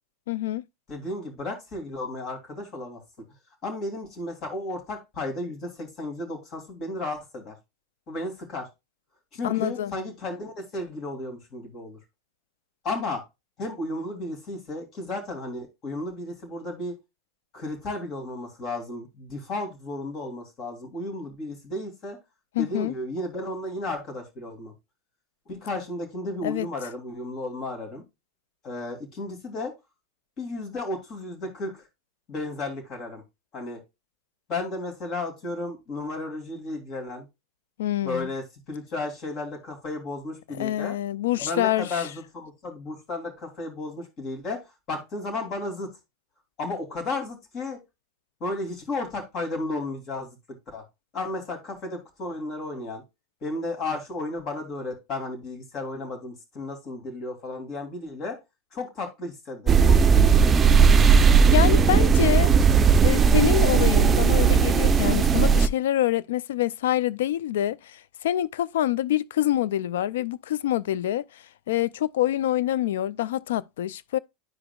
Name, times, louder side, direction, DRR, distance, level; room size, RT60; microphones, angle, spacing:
voice 1, 0.3-0.6 9.4-9.9 22.5-22.9 26.4-26.7 37.8-38.3 40.6-42.1 61.5-62.5 63.0-74.2, left 13 dB, 80° left, 0.4 m, -26 dB
voice 2, 0.9-3.0 3.6-7.5 8.1-8.7 9.3-12.0 12.8-13.2 13.6-16.9 17.5-22.2 22.6-24.7 25.5-28.0 28.6-29.7 30.4-31.8 32.3-33.2 33.5-33.8 34.5-37.3 38.0-40.9 41.4-44.6 44.9-45.9 46.6-47.8 48.4-50.4 50.7-50.8 51.1-53.0 53.4-58.4 58.7-60.7, left 2 dB, 45° left, 3.0 m, -33 dB
sound 1, 59.7-65.7, right 6 dB, 25° right, 0.5 m, -17 dB
11.0 x 5.0 x 2.3 m
hypercardioid pair, 105°, 0 cm